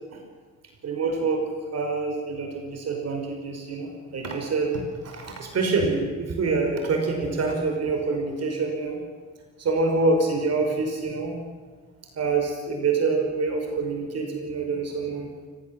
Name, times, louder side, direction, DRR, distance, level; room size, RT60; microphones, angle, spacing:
voice 1, 0.8-1.4 1.7-9.0 9.6-11.4 12.2-15.3, right 3 dB, 55° right, 3 dB, 5.5 m, -26 dB
29.0 x 16.0 x 7.9 m, 1.4 s
cardioid pair, 90°, 30 cm